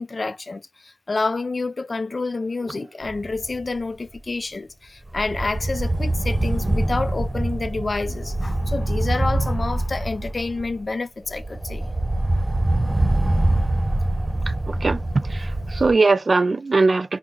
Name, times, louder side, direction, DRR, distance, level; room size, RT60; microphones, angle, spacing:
voice 1, 0.0-11.9, left 3 dB, 65° left, 0.4 m, -28 dB
sound 1, 3.0-3.8 4.1-4.3 5.1-10.9 11.3-15.9, right 1 dB, 30° right, 0.8 m, -24 dB
voice 2, 14.5-17.2, right 3 dB, 65° right, 0.3 m, -21 dB
3.9 x 2.0 x 4.3 m
wide cardioid pair, 55°, 0 cm